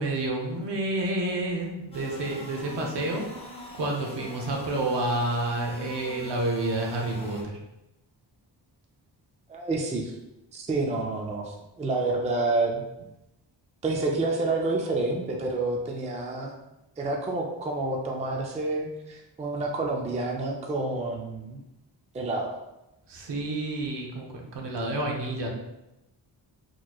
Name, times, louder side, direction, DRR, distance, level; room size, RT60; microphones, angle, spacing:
voice 1, 0.0-3.3 3.7-7.6 23.1-25.5, right 2 dB, 70° right, 0 dB, 0.8 m, -29 dB
sound 1, 1.9-7.4, left 2 dB, 15° left, 0.7 m, -42 dB
voice 2, 9.5-10.1 10.5-12.8 13.8-16.5 17.0-21.6 22.1-22.5, right 2 dB, 15° right, 0 dB, 0.3 m, -28 dB
4.4 x 3.0 x 2.3 m, 0.92 s
wide cardioid pair, 160°, 44 cm